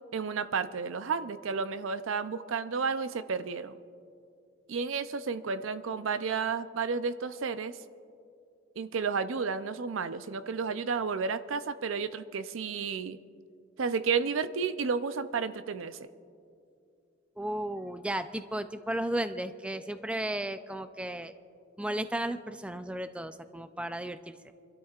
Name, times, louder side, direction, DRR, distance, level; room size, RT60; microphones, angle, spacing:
voice 1, 0.1-3.7 4.7-7.7 8.8-13.2 13.8-16.0, right 5 dB, 75° right, 12 dB, 0.5 m, -32 dB
voice 2, 17.4-21.3 21.8-24.4, right 1 dB, 5° right, 10 dB, 0.4 m, -34 dB
27.0 x 12.5 x 2.4 m, 2.5 s
head